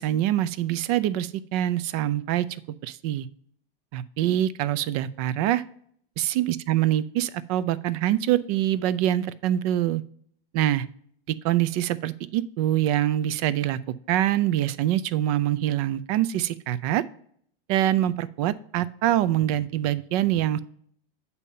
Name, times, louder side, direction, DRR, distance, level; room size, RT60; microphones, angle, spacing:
voice 1, 0.0-3.3 3.9-5.6 6.2-10.0 10.5-10.9 11.3-13.8 14.1-17.0 17.7-20.6, right 12 dB, 40° right, 16 dB, 0.4 m, -24 dB
8.2 x 2.8 x 5.4 m, 0.62 s
supercardioid pair, 135°, 29 cm